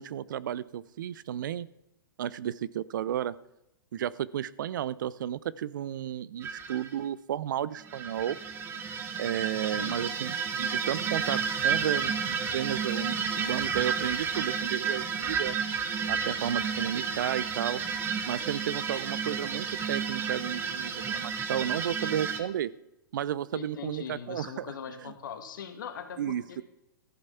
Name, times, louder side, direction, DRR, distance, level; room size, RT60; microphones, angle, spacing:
voice 1, 0.0-1.7 2.2-3.3 3.9-8.4 9.2-12.1 12.4-15.5 16.1-17.8 18.3-22.7 23.1-24.7 25.0-25.1 26.2-26.6, right 10 dB, 65° right, 20 dB, 0.6 m, -33 dB
sound 1, 6.4-6.9 7.8-22.4, right 6 dB, 20° right, 1.3 m, -31 dB
voice 2, 9.7-10.1 23.5-26.6, left 7 dB, 65° left, 7 dB, 2.0 m, -41 dB
14.0 x 8.2 x 5.7 m, 0.86 s
hypercardioid pair, 125°, 11 cm